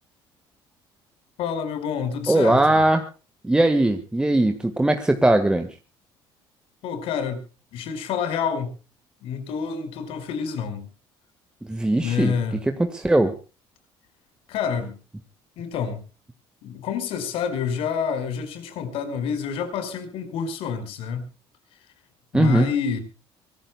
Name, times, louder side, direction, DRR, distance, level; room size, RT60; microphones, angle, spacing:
voice 1, 1.4-2.8 6.8-7.4 7.7-8.7 9.2-10.9 12.0-12.6 14.5-15.0 15.6-16.0 16.6-21.3 22.3-23.0, left 7 dB, 70° left, 10 dB, 4.8 m, -28 dB
voice 2, 2.3-3.0 3.4-5.7 11.6-12.3 12.7-13.3 22.3-22.7, right 1 dB, 10° right, 6 dB, 1.5 m, -20 dB
24.0 x 19.5 x 2.2 m, 0.33 s
cardioid pair, 120°, 10 cm